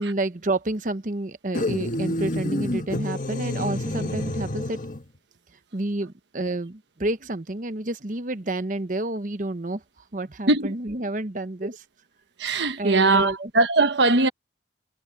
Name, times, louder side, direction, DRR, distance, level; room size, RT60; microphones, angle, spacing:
voice 1, 0.0-4.8 5.7-9.8 10.1-11.8 12.8-13.5, right 2 dB, 45° right, 1.0 m, -29 dB
sound 1, 1.5-5.0, left 1 dB, 45° left, 1.7 m, -28 dB
voice 2, 12.4-14.3, right 3 dB, 75° right, 1.2 m, -20 dB
head